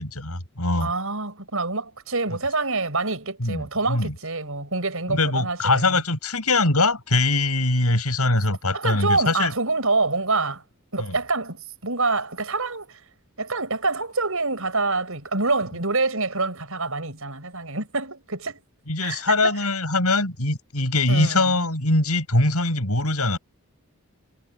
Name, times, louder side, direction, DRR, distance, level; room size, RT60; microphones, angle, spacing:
voice 1, 0.0-0.9 3.4-4.1 5.1-9.5 11.0-11.2 18.9-23.4, left 2 dB, 80° left, 7.8 m, -22 dB
voice 2, 0.8-6.0 8.7-10.6 10.9-13.0 13.4-18.6 19.0-19.5 21.1-21.6, right 3 dB, 65° right, 7.0 m, -26 dB
head